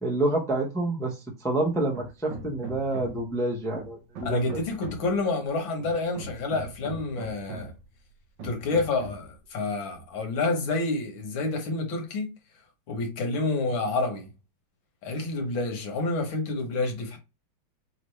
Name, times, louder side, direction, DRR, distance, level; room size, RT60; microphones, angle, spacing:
voice 1, 0.0-1.1 1.4-4.6, right 2 dB, 5° left, 0.4 m, -28 dB
Hammer, 1.9-3.3 3.8-5.2 5.8-7.8 8.4-9.3, right 2 dB, 65° right, 1.7 m, -41 dB
voice 2, 4.2-7.7 8.4-12.3 12.9-14.3 15.0-17.2, left 3 dB, 75° left, 1.9 m, -28 dB
5.8 x 2.5 x 3.2 m
omnidirectional pair, 2.2 m